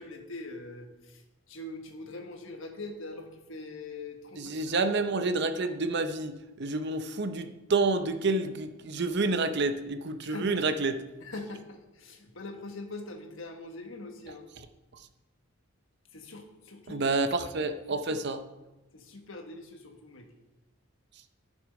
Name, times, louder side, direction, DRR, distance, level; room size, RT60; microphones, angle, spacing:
voice 1, 0.0-4.7 9.2-9.3 10.2-10.6 11.2-14.4 16.1-17.0 17.6-18.0 18.9-20.3, left 2 dB, 70° left, 4 dB, 1.3 m, -43 dB
voice 2, 4.4-11.0 16.9-18.4, right 3 dB, 55° right, 10 dB, 0.6 m, -29 dB
11.0 x 6.3 x 5.2 m, 1.0 s
head